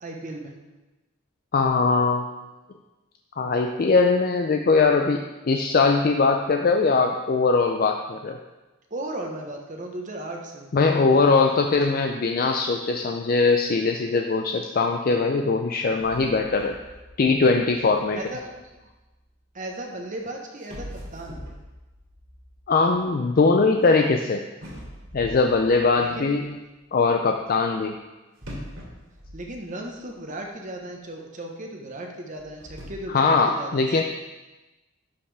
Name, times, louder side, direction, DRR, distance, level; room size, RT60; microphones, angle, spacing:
voice 1, 0.0-0.6 8.9-10.7 11.1-11.6 18.1-18.8 19.5-21.4 26.0-26.3 29.3-34.0, right 1 dB, 40° right, 2 dB, 1.1 m, -36 dB
voice 2, 1.5-2.3 3.4-8.4 10.7-16.7 17.2-18.2 22.7-24.4 25.1-26.5 26.9-28.0 33.1-34.0, left 4 dB, 45° left, 4 dB, 0.4 m, -21 dB
sound 1, 16.0-19.2 20.1-20.2 20.6-23.9 24.6-26.5 28.4-30.2 30.4-30.5 31.2-31.3 32.3-32.9, equal, 70° right, 2.7 m, -43 dB
11.5 x 5.5 x 3.4 m, 1.1 s
head